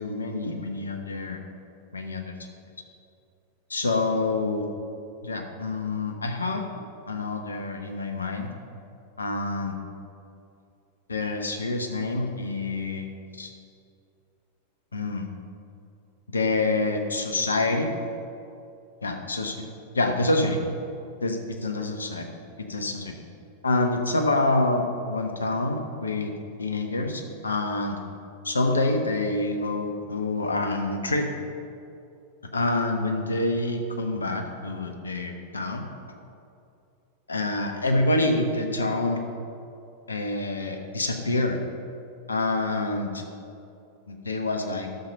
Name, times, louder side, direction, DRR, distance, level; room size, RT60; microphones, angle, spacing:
voice 1, 0.0-1.4 1.9-2.3 3.7-4.6 5.2-6.6 7.1-8.5 9.2-9.7 11.1-13.1 13.3-13.5 14.9-15.3 16.3-17.9 19.0-19.7 19.9-20.6 21.2-22.3 22.6-23.1 23.6-26.3 26.6-28.0 28.4-31.3 32.5-35.9 37.3-39.2 40.1-41.6 42.3-43.2 44.1-44.9, left 2 dB, 75° left, 4 dB, 1.1 m, -27 dB
12.0 x 6.8 x 5.4 m, 2.6 s
figure-of-eight pair, 90°, 0 cm